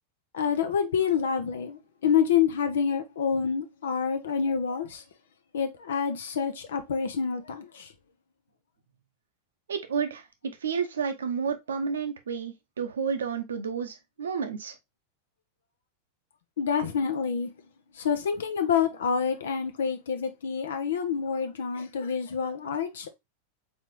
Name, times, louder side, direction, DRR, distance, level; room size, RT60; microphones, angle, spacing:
voice 1, 0.3-5.0 5.5-7.9 16.6-17.5 18.0-23.1, left 7 dB, 60° left, 0.8 m, -27 dB
voice 2, 9.7-14.7, right 6 dB, 65° right, 0.8 m, -31 dB
4.2 x 4.0 x 3.1 m
figure-of-eight pair, 90°, 0 cm